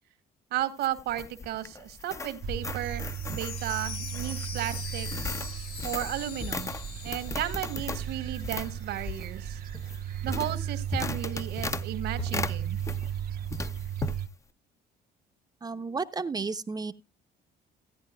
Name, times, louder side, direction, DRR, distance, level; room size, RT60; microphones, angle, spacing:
voice 1, 0.5-5.1 5.8-6.7 7.0-9.6 10.2-12.8, right 12 dB, 75° right, 1.6 m, -34 dB
sound 1, 0.6-13.2 13.5-14.2, left 3 dB, 20° left, 0.6 m, -37 dB
sound 2, 2.4-14.3, right 10 dB, 60° right, 0.8 m, -36 dB
Chime, 2.8-8.7 9.0-9.1 9.7-9.8, left 6 dB, 75° left, 7.0 m, -42 dB
voice 2, 15.6-16.9, right 4 dB, 25° right, 0.7 m, -32 dB
16.5 x 9.6 x 2.2 m
cardioid pair, 110°, 17 cm